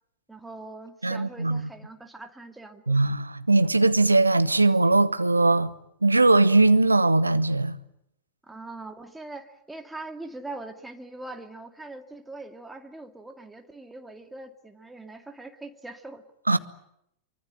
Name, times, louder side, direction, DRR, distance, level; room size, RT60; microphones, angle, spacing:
voice 1, 0.3-3.0 8.4-16.2, right 2 dB, 5° right, 2.3 m, -42 dB
voice 2, 1.0-1.7 2.9-5.7 6.0-7.8 16.5-16.6, right 2 dB, 80° right, 1.0 m, -20 dB
24.0 x 24.0 x 8.9 m
figure-of-eight pair, 90°, 0 cm